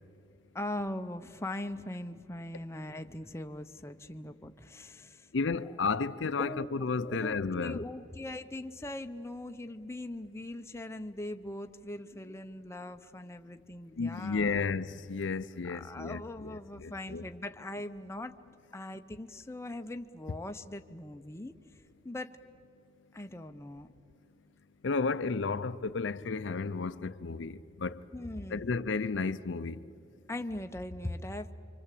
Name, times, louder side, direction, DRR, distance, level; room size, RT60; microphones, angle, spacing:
voice 1, 0.5-5.3 5.6-5.7 6.4-14.6 15.7-18.4 18.7-21.5 22.0-22.3 23.1-23.9 28.1-28.7 30.3-31.5, left 1 dB, 15° left, 0.7 m, -40 dB
voice 2, 5.3-7.8 13.9-17.2 24.8-28.0 28.5-29.8, left 4 dB, 65° left, 0.6 m, -32 dB
28.0 x 25.0 x 8.4 m
head